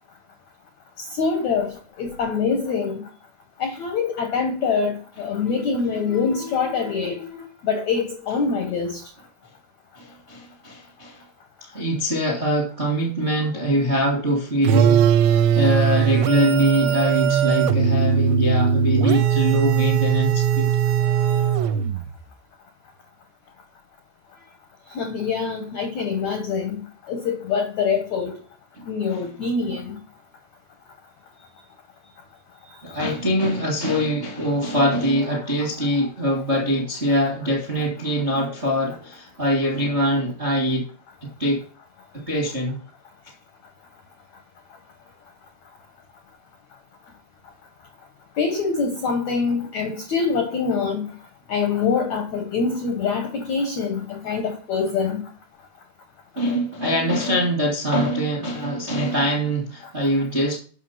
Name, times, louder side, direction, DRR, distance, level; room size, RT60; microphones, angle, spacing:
voice 1, 1.0-3.0 3.6-7.3 7.6-9.0 24.9-26.8 27.1-28.4 28.9-30.0 32.9-33.0 48.4-51.1 51.5-55.2, left 5 dB, 85° left, 1.6 m, -24 dB
voice 2, 10.0-11.2 11.6-20.7 28.8-28.9 32.8-40.9 41.2-41.6 42.1-42.8 56.3-60.6, equal, 45° right, 0.8 m, -23 dB
sound 1, 14.6-22.1, right 8 dB, 85° right, 3.0 m, -19 dB
8.4 x 6.2 x 5.7 m
omnidirectional pair, 5.1 m